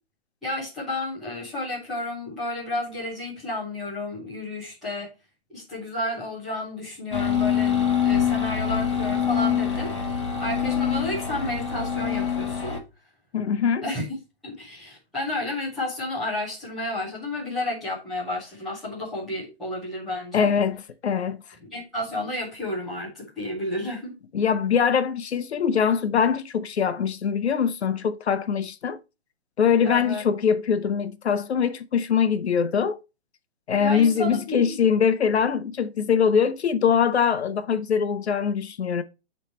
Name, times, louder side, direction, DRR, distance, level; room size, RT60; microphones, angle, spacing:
voice 1, 0.4-5.1 5.5-9.9 10.4-12.8 13.8-14.1 14.4-20.5 21.7-24.1 29.8-30.2 33.8-34.7 35.3-35.4, left 1 dB, ahead, 0.7 m, -31 dB
sound 1, 7.1-12.8, left 8 dB, 25° left, 1.0 m, -25 dB
voice 2, 13.3-13.8 20.3-21.4 24.3-29.0 29.6-33.0 33.7-39.0, left 7 dB, 80° left, 0.9 m, -23 dB
9.2 x 3.3 x 4.3 m
hypercardioid pair, 180°, 32 cm